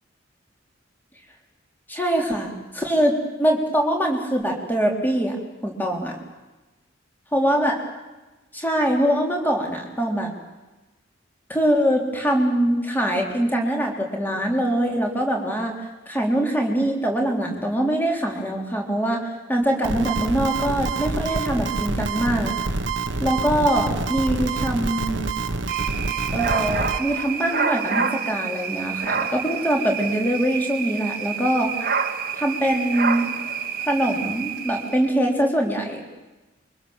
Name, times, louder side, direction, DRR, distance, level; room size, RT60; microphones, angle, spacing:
voice 1, 1.9-5.4 5.6-6.1 7.3-7.8 8.5-10.3 11.5-15.7 16.1-22.5 23.2-25.3 26.3-31.7 32.3-33.4 33.9-36.0, right 1 dB, 10° left, 1 dB, 3.8 m, -23 dB
sound 1, 19.8-27.0, right 3 dB, 65° right, 1.3 m, -27 dB
sound 2, 25.7-35.1, right 6 dB, 45° right, 1.4 m, -28 dB
27.5 x 24.5 x 7.3 m, 1.1 s
head